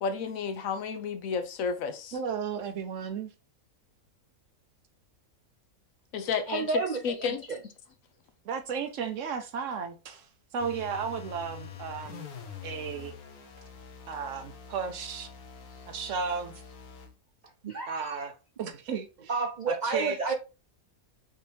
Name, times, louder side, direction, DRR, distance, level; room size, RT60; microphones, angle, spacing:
voice 1, 0.0-2.2 6.1-6.7 7.0-7.4, left 6 dB, 70° left, 1.1 m, -31 dB
voice 2, 2.1-3.3 8.4-10.3 10.5-12.3 12.6-13.1 14.1-15.3 15.9-16.5 17.9-18.3 18.6-19.3 19.7-20.3, right 6 dB, 65° right, 0.9 m, -34 dB
voice 3, 6.5-7.6 17.6-18.2 19.3-20.3, right 4 dB, 85° right, 0.4 m, -31 dB
sound 1, 10.6-17.1, left 7 dB, 85° left, 1.3 m, -45 dB
5.2 x 2.8 x 3.3 m
omnidirectional pair, 1.5 m